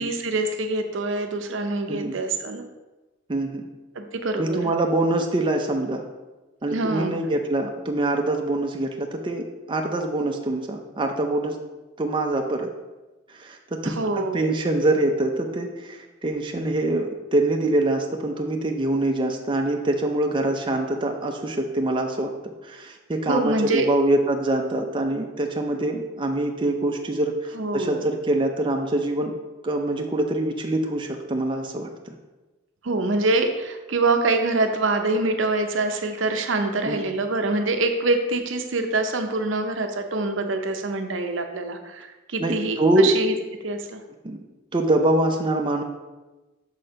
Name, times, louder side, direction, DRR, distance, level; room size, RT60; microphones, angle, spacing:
voice 1, 0.0-2.6 4.0-4.6 6.7-7.2 13.8-14.4 23.3-23.9 27.5-28.0 32.8-43.3 43.6-44.0, right 2 dB, 65° right, 6 dB, 0.7 m, -25 dB
voice 2, 3.3-3.7 4.4-6.0 6.6-11.6 12.0-12.7 13.3-22.3 22.6-29.3 29.6-32.1 36.9-37.0 42.4-43.1 44.2-44.4 44.7-45.8, right 1 dB, 25° right, 2 dB, 0.5 m, -24 dB
6.5 x 4.3 x 5.0 m, 1.1 s
head